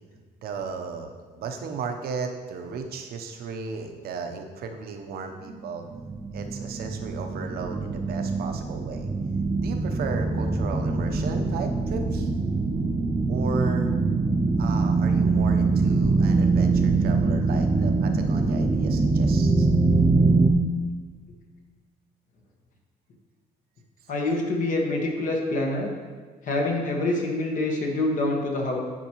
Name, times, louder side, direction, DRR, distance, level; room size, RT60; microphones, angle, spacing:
voice 1, 0.4-5.8 6.3-9.1 9.6-12.3 13.3-13.9 14.6-19.7, right 5 dB, 65° right, 5 dB, 0.8 m, -35 dB
sound 1, 5.9-20.5, right 3 dB, 20° right, 0.4 m, -23 dB
voice 2, 24.1-25.9 26.4-28.8, left 2 dB, 50° left, 1 dB, 1.3 m, -26 dB
10.0 x 4.5 x 3.0 m, 1.5 s
cardioid pair, 110°, 17 cm